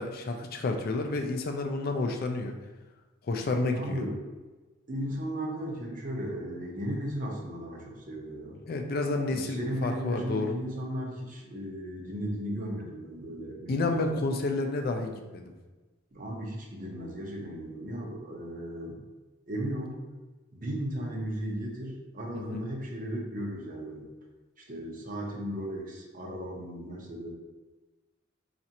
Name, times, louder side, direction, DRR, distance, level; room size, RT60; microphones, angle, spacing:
voice 1, 0.0-2.5 3.3-4.0 8.7-10.6 13.7-15.5 22.3-22.7, left 2 dB, 50° left, 4 dB, 0.4 m, -30 dB
voice 2, 3.8-4.2 4.9-8.6 9.3-14.1 16.1-19.0 19.5-20.0 20.5-24.1 24.6-27.3, equal, 45° right, 0 dB, 0.7 m, -36 dB
4.2 x 2.5 x 2.8 m, 1.2 s
head